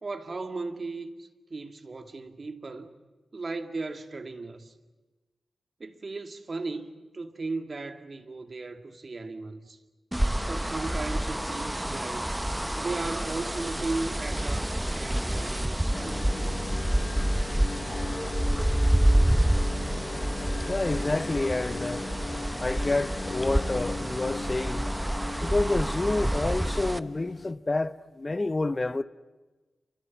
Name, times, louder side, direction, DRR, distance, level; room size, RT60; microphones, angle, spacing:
voice 1, 0.0-2.9 3.3-4.7 5.8-9.8 10.5-12.3 12.8-16.5, right 3 dB, 50° right, 2.1 m, -36 dB
sound 1, 10.1-27.0, right 1 dB, 10° right, 0.8 m, -28 dB
sound 2, 15.9-27.5, left 4 dB, 65° left, 1.1 m, -38 dB
voice 2, 20.7-22.0 22.6-24.9 25.4-29.0, left 2 dB, 35° left, 0.9 m, -28 dB
28.0 x 24.5 x 7.2 m
cardioid pair, 45°, 0 cm